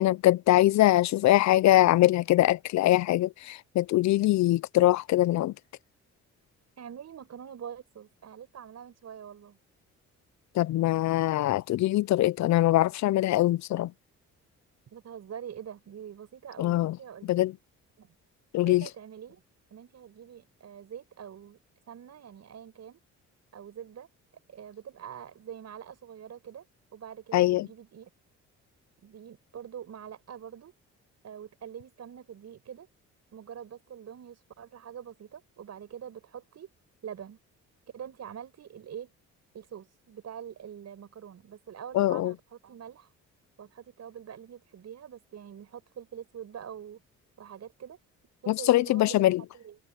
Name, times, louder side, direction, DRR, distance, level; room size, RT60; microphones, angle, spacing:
voice 1, 0.0-5.5 10.5-13.9 16.6-17.0 17.2-17.5 18.5-18.9 27.3-27.7 41.9-42.3 48.5-49.4, left 15 dB, 65° left, 0.5 m, -23 dB
voice 2, 6.8-9.6 14.9-17.4 18.0-18.2 18.6-19.4 19.7-21.6 21.9-23.0 23.5-24.1 24.5-26.7 26.9-28.1 29.0-30.7 31.2-32.9 33.3-36.7 37.0-37.4 37.9-39.1 39.5-43.1 43.6-47.0 47.4-48.0 48.4-49.3 49.5-49.8, right 8 dB, 60° right, 7.5 m, -44 dB
cardioid pair, 90°, 30 cm